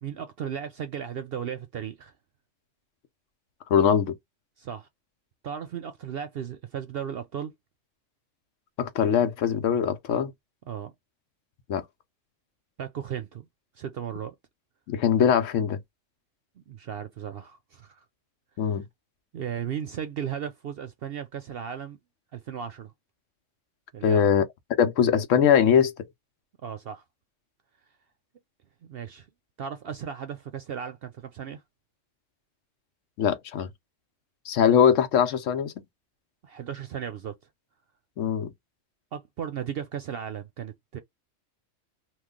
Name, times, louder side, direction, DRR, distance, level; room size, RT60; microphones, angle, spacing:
voice 1, 0.0-2.1 4.6-4.9 5.4-7.5 10.7-10.9 12.8-13.5 13.8-14.3 16.6-18.0 19.3-22.0 22.3-22.9 23.9-24.3 26.6-27.0 28.9-29.3 29.6-31.6 36.4-37.4 39.1-41.0, right 8 dB, 60° right, 0.7 m, -35 dB
voice 2, 3.7-4.2 8.8-10.3 11.7-11.8 14.9-15.8 18.6-18.9 24.0-24.5 24.8-25.9 33.2-33.7 34.5-35.9 38.2-38.5, left 8 dB, 90° left, 1.1 m, -22 dB
3.1 x 2.2 x 3.6 m
omnidirectional pair, 1.3 m